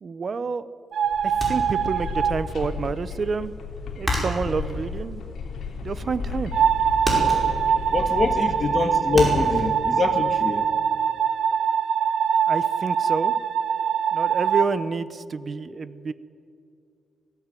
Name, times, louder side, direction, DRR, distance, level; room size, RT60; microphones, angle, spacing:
voice 1, 0.0-0.7 1.2-3.5 3.9-5.3 5.8-6.5 12.5-13.3 14.1-16.1, right 5 dB, 35° right, 0.8 m, -29 dB
sound 1, 0.9-2.3 6.5-14.6, right 7 dB, 65° right, 0.9 m, -23 dB
sound 2, 1.0-9.6, left 4 dB, 65° left, 3.0 m, -34 dB
sound 3, 1.4-2.5 2.8-6.0 6.3-6.7 7.0-9.6, equal, 10° right, 5.2 m, -30 dB
voice 2, 7.9-10.7, left 4 dB, 30° left, 1.7 m, -24 dB
20.0 x 15.5 x 9.2 m
cardioid pair, 145°, 0 cm